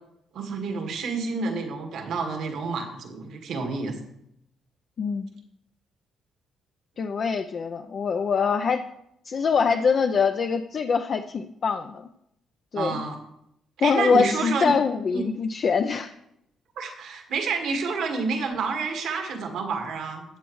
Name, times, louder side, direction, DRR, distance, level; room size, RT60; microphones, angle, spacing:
voice 1, 0.3-3.9 12.7-13.2 13.8-14.7 15.1-15.2 16.8-20.2, right 4 dB, 75° right, 3 dB, 1.8 m, -29 dB
voice 2, 5.0-5.3 7.0-8.8 9.2-12.1 12.7-13.0 13.8-16.1, left 5 dB, 50° left, 6 dB, 0.5 m, -24 dB
13.5 x 7.9 x 3.1 m, 0.78 s
cardioid pair, 90°, 0 cm